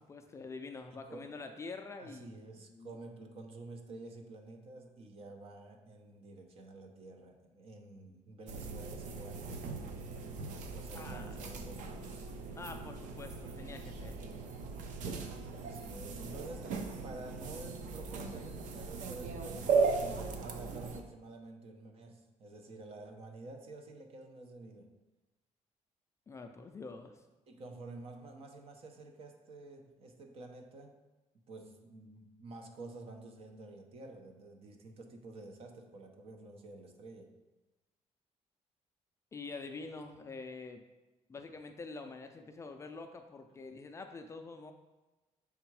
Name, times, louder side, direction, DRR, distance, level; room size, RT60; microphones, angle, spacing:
voice 1, 0.0-2.4 2.7-3.0 10.9-11.3 12.5-14.2 26.3-27.1 39.3-40.8 41.3-44.7, left 4 dB, 25° left, 5 dB, 0.3 m, -46 dB
voice 2, 0.9-1.3 2.0-9.7 10.7-12.3 15.5-16.7 17.0-24.9 27.5-30.9 31.3-37.3, right 2 dB, 50° right, 4 dB, 0.8 m, -50 dB
sound 1, 8.5-21.0, right 4 dB, 90° right, 0.7 m, -37 dB
6.8 x 3.6 x 4.6 m, 1.1 s
cardioid pair, 170°, 12 cm